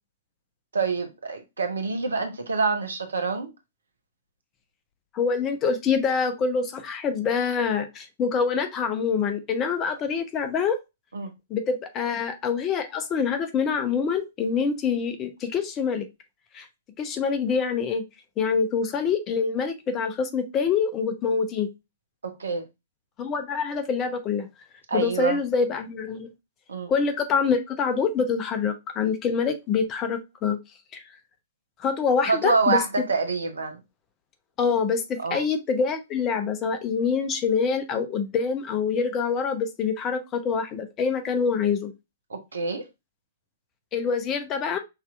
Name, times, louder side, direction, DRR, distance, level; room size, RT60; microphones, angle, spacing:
voice 1, 0.7-3.5 11.1-11.3 22.4-22.6 24.9-25.4 26.7-26.9 32.3-33.8 35.2-35.4 42.3-42.8, right 4 dB, 70° right, 0.9 m, -26 dB
voice 2, 5.1-10.8 11.5-16.1 16.5-16.7 17.0-18.0 18.4-21.7 23.2-24.5 24.9-26.3 26.9-30.6 31.8-32.8 34.6-41.9 43.9-44.8, left 5 dB, 25° left, 0.8 m, -25 dB
5.7 x 2.8 x 2.4 m
figure-of-eight pair, 110°, 0 cm